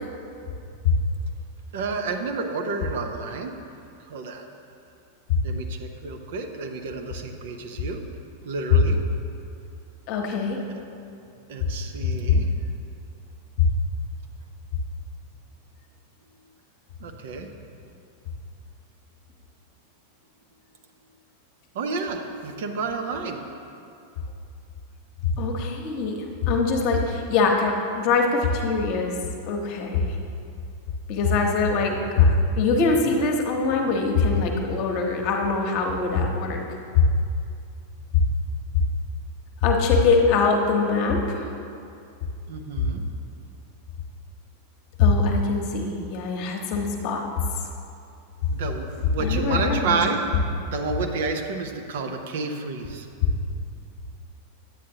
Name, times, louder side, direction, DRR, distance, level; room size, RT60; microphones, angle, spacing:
voice 1, 1.7-3.5 4.0-4.5 5.4-8.0 8.4-9.0 10.7-10.8 11.5-12.5 17.0-17.5 21.7-23.4 42.5-43.0 48.5-50.2 50.7-53.1, right 4 dB, 55° right, 4 dB, 0.6 m, -30 dB
voice 2, 10.1-10.6 12.3-12.4 25.4-29.2 29.5-30.1 31.1-36.6 38.1-38.2 39.6-41.4 45.0-47.3 49.2-50.0, left 4 dB, 45° left, 1 dB, 1.0 m, -22 dB
10.0 x 8.4 x 2.8 m, 2.6 s
figure-of-eight pair, 90°, 0 cm